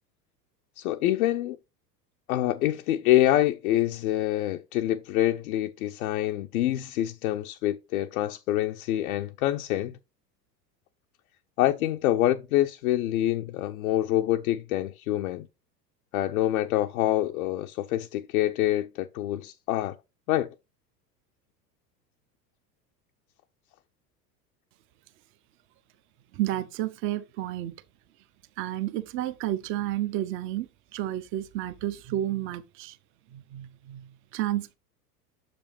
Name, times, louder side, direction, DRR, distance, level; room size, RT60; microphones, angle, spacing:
voice 1, 0.8-1.6 2.3-10.0 11.6-15.5 16.1-20.0 20.3-20.5, left 14 dB, 60° left, 0.5 m, -26 dB
voice 2, 26.3-27.7 28.6-33.0 33.3-34.7, right 13 dB, 25° right, 0.5 m, -31 dB
6.7 x 5.1 x 3.2 m
figure-of-eight pair, 80°, 49 cm